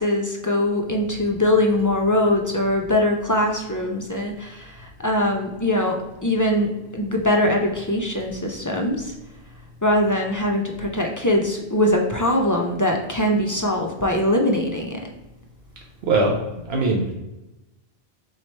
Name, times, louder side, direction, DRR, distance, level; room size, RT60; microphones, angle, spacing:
voice 1, 0.0-4.7 5.0-9.1 9.8-15.0, left 1 dB, 30° left, 1 dB, 0.3 m, -22 dB
voice 2, 16.0-17.1, right 2 dB, 75° right, 0 dB, 0.9 m, -21 dB
3.9 x 3.1 x 4.2 m, 1.0 s
omnidirectional pair, 1.1 m